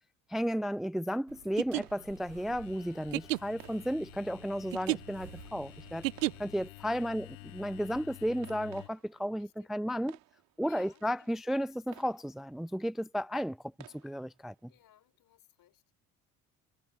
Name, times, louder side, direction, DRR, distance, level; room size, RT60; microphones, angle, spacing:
voice 1, 0.3-6.0 6.4-7.3 7.5-10.2 10.6-13.6 14.0-14.5, equal, ahead, 0.5 m, -33 dB
sound 1, 1.1-15.2, right 17 dB, 65° right, 3.4 m, -60 dB
sound 2, 1.4-6.7, right 19 dB, 80° right, 0.8 m, -34 dB
sound 3, 1.9-8.9, left 22 dB, 75° left, 0.8 m, -51 dB
voice 2, 9.4-9.7 10.7-11.4 14.7-15.9, left 13 dB, 60° left, 5.5 m, -61 dB
hypercardioid pair, 55°, 38 cm